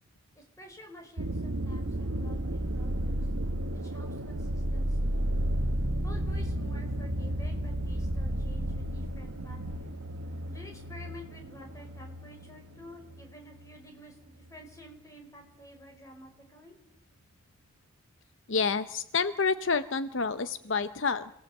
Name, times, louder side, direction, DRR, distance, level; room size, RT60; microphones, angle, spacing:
voice 1, 0.4-3.3 3.7-5.2 6.0-9.9 10.4-16.7, equal, 15° left, 3 dB, 5.1 m, -51 dB
sound 1, 1.2-14.2 14.5-15.1, right 1 dB, 85° right, 1.4 m, -33 dB
voice 2, 18.5-21.3, left 5 dB, 65° left, 12 dB, 0.8 m, -28 dB
27.5 x 18.0 x 8.0 m, 0.80 s
head